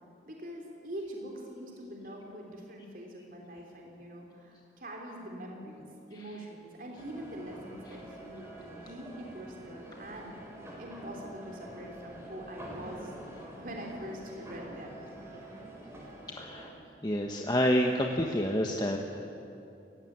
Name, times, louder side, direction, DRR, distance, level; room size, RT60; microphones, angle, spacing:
voice 1, 0.3-5.8 6.1-10.3 10.8-15.0, right 1 dB, 50° right, 0 dB, 3.4 m, -44 dB
sound 1, 7.0-16.7, right 1 dB, 15° right, 4.5 m, -47 dB
voice 2, 16.3-16.7 17.0-19.0, equal, 20° left, 2 dB, 1.1 m, -28 dB
28.5 x 16.0 x 8.7 m, 2.7 s
head